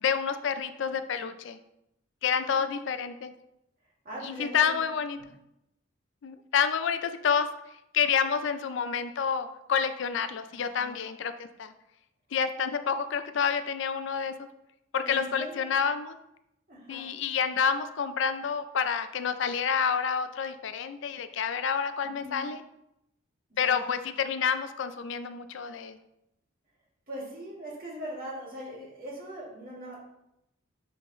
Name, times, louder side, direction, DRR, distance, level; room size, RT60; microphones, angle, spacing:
voice 1, 0.0-1.6 2.2-3.3 4.2-5.2 6.2-7.5 7.9-11.3 11.6-11.7 12.3-14.5 14.9-16.2 16.9-22.6 23.6-26.0, left 7 dB, 60° left, 10 dB, 0.4 m, -28 dB
voice 2, 4.0-4.9 5.2-5.3 10.5-11.0 15.0-15.7 16.7-17.1 22.2-22.5 23.5-23.9 27.1-30.0, right 1 dB, 45° right, -4 dB, 2.1 m, -41 dB
9.1 x 3.8 x 3.1 m, 0.84 s
head